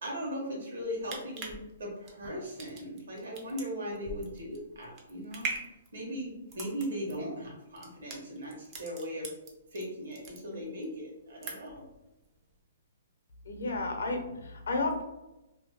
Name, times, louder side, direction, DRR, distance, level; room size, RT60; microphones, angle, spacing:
voice 1, 0.0-5.5 5.9-9.3 9.7-11.8, equal, 70° right, -2 dB, 1.2 m, -38 dB
sound 1, 0.8-9.8 10.1-10.9 11.2-11.9 12.2-12.3, right 3 dB, 20° right, 0.4 m, -42 dB
voice 2, 13.5-15.0, left 2 dB, 85° left, 4 dB, 0.7 m, -32 dB
2.7 x 2.2 x 3.2 m, 0.96 s
hypercardioid pair, 175°, 0 cm